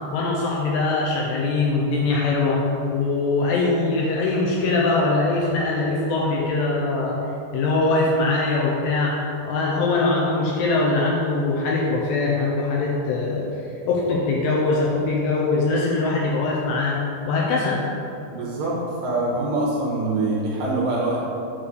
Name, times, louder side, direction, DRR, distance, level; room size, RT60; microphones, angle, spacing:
voice 1, 0.1-2.6 2.9-7.2 7.5-9.2 9.4-13.5 13.9-17.0 17.3-17.8, left 3 dB, 80° left, -3 dB, 2.6 m, -22 dB
voice 2, 18.4-21.2, right 2 dB, 70° right, -5 dB, 2.7 m, -24 dB
8.5 x 3.2 x 6.4 m, 2.7 s
omnidirectional pair, 5.5 m